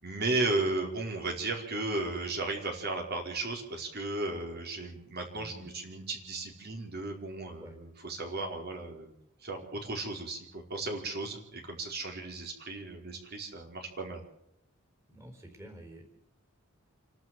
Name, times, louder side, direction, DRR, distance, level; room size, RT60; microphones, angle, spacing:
voice 1, 0.0-9.1 9.4-14.2, right 2 dB, 50° right, 1 dB, 4.9 m, -35 dB
voice 2, 5.3-5.7 7.6-7.8 15.1-16.0, right 1 dB, 15° right, 2 dB, 4.4 m, -48 dB
28.5 x 12.0 x 7.8 m, 0.78 s
head